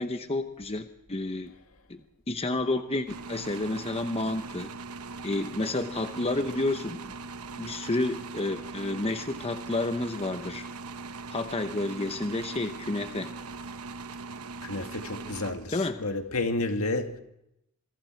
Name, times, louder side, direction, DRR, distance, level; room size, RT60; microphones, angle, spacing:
voice 1, 0.0-1.5 1.9-2.0 2.3-4.7 5.2-7.2 7.6-10.7 11.3-13.3 15.7-16.0, left 2 dB, 25° left, 0.9 m, -30 dB
sound 1, 3.1-16.1, right 4 dB, 80° right, 0.9 m, -41 dB
voice 2, 14.6-17.2, left 2 dB, 70° left, 2.1 m, -31 dB
27.0 x 23.5 x 4.6 m
head